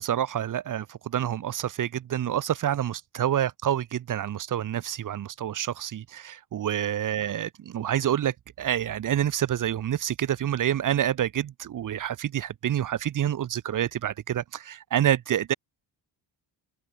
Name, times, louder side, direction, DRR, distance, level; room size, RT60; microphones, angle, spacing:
voice 1, 0.0-15.5, right 10 dB, 45° right, 0.7 m, -28 dB
open air
wide cardioid pair, 160°, 44 cm